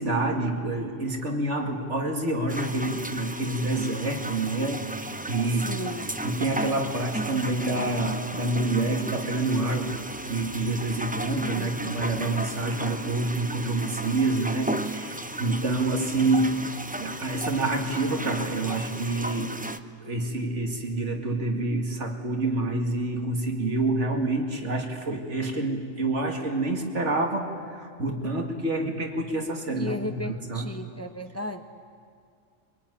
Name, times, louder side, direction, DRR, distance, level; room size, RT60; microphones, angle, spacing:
voice 1, 0.0-5.8 6.2-10.0 10.2-19.6 20.0-30.7, right 2 dB, 65° right, 2 dB, 2.6 m, -27 dB
sound 1, 2.5-19.8, right 1 dB, 10° right, 0.5 m, -35 dB
voice 2, 5.6-6.1 11.5-12.3 29.7-31.6, left 1 dB, 15° left, 6 dB, 0.9 m, -36 dB
22.5 x 22.0 x 9.9 m, 2.2 s
omnidirectional pair, 1.3 m